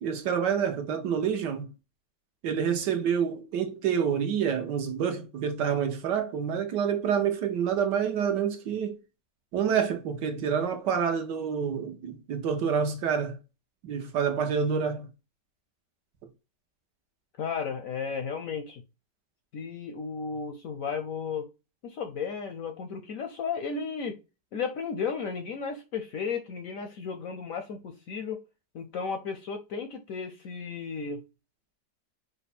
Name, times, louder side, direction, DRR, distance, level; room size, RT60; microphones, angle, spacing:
voice 1, 0.0-1.7 2.4-9.0 9.5-13.4 13.8-15.1, right 7 dB, 75° right, 1.5 m, -28 dB
voice 2, 17.4-18.8 19.5-21.5 21.8-24.2 24.5-28.4 28.7-31.2, left 5 dB, 65° left, 0.8 m, -34 dB
5.2 x 2.3 x 4.1 m
omnidirectional pair, 1.9 m